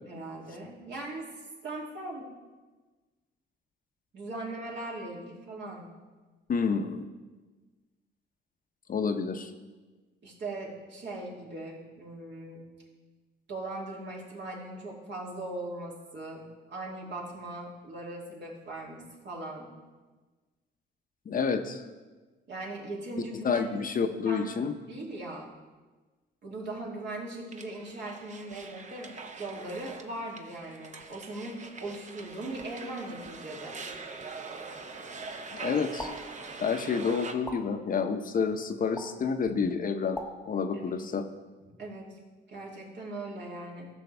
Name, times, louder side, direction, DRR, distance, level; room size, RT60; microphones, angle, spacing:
voice 1, 0.0-1.3 1.6-2.3 4.1-5.9 10.2-12.7 13.5-19.7 22.5-23.9 24.3-24.6 24.9-25.5 26.4-33.8 40.7-41.0 41.6-42.1 42.5-43.9, right 2 dB, 60° right, -3 dB, 2.6 m, -39 dB
voice 2, 6.5-7.0 8.9-9.5 21.3-21.8 23.4-24.7 35.5-36.1 36.6-40.2 40.4-41.2, left 5 dB, 45° left, 7 dB, 0.7 m, -29 dB
sound 1, 27.5-37.3, right 4 dB, 35° right, 0.8 m, -43 dB
sound 2, 36.0-36.1 37.4-37.6 39.0-39.1 40.1-40.3, left 2 dB, 10° left, 1.2 m, -37 dB
15.0 x 6.4 x 3.4 m, 1.3 s
cardioid pair, 90°, 20 cm